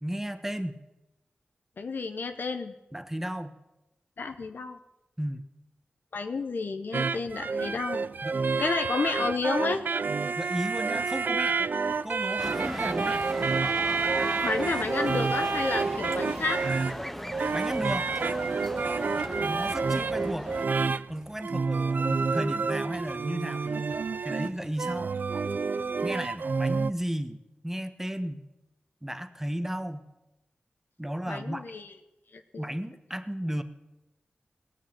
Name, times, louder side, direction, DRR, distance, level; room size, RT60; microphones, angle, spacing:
voice 1, 0.0-0.8 2.9-3.6 5.2-5.4 8.2-8.4 10.3-11.7 12.0-13.3 17.5-18.1 19.4-20.5 21.1-23.8 24.2-25.2 26.0-28.5 29.0-30.1 31.0-31.6 32.6-33.6, equal, 10° right, 10 dB, 1.1 m, -34 dB
voice 2, 1.8-2.7 4.2-4.8 6.1-8.0 8.6-9.8 14.4-16.6 31.3-31.9 32.3-32.6, left 4 dB, 70° left, 7 dB, 0.8 m, -31 dB
sound 1, 6.9-26.9, right 4 dB, 65° right, 0.4 m, -29 dB
sound 2, 12.4-20.7, equal, 5° left, 0.6 m, -37 dB
18.5 x 6.6 x 7.5 m, 0.96 s
cardioid pair, 55°, 3 cm